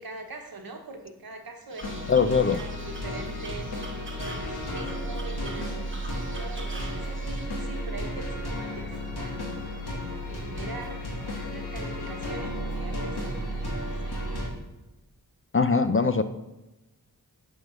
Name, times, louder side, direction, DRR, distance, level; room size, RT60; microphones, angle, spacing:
voice 1, 0.0-2.1 2.5-3.8 4.2-9.5 9.8-13.3 13.6-14.2, right 2 dB, 65° right, 5 dB, 1.2 m, -43 dB
sound 1, 1.7-7.5, right 3 dB, 30° right, 0.8 m, -44 dB
sound 2, 1.8-14.5, equal, 75° left, 2.1 m, -33 dB
voice 2, 2.1-2.6 15.5-16.2, left 5 dB, 35° left, 10 dB, 0.5 m, -21 dB
8.6 x 3.7 x 6.1 m, 1.0 s
wide cardioid pair, 75°, 38 cm